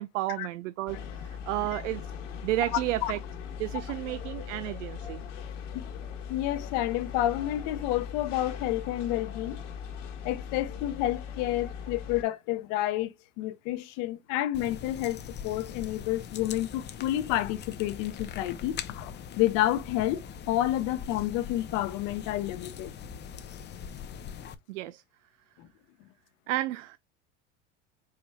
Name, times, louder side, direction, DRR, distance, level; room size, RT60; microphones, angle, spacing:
voice 1, 0.0-2.0 2.4-3.2 3.6-5.2 24.7-25.0 26.5-27.0, right 16 dB, 85° right, 0.5 m, -32 dB
sound 1, 0.9-12.2, left 7 dB, 90° left, 1.6 m, -40 dB
voice 2, 2.7-3.1 5.7-5.8 6.3-9.6 10.2-22.9 25.6-25.7, left 14 dB, 60° left, 1.0 m, -30 dB
sound 2, 14.5-24.5, left 8 dB, 30° left, 0.6 m, -42 dB
5.0 x 4.1 x 2.3 m
supercardioid pair, 105°, 36 cm